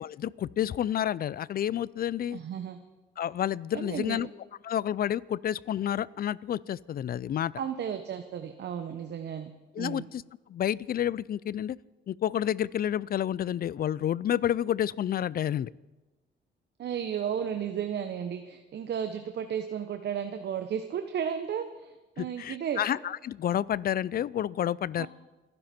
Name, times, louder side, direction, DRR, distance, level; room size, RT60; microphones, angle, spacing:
voice 1, 0.0-2.4 3.2-4.3 4.6-7.5 9.8-10.2 10.5-11.8 12.1-15.7 22.2-25.1, left 10 dB, 50° left, 22 dB, 0.5 m, -29 dB
voice 2, 2.3-2.8 3.7-4.3 7.6-9.5 9.8-10.1 16.8-22.8 25.0-25.1, right 8 dB, 60° right, 7 dB, 1.0 m, -34 dB
29.0 x 11.0 x 4.4 m, 1.1 s
cardioid pair, 90°, 20 cm